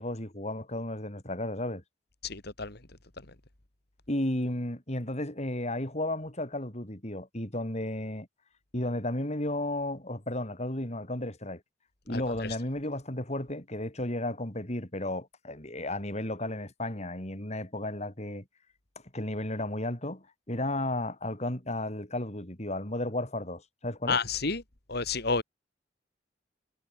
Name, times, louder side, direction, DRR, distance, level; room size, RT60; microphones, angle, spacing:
voice 1, 0.0-1.8 4.1-8.3 8.7-11.6 12.1-18.4 19.1-24.2, left 1 dB, 35° left, 5.0 m, -33 dB
voice 2, 2.2-2.8 12.1-12.6 24.1-24.6 24.9-25.4, left 4 dB, 60° left, 2.7 m, -30 dB
head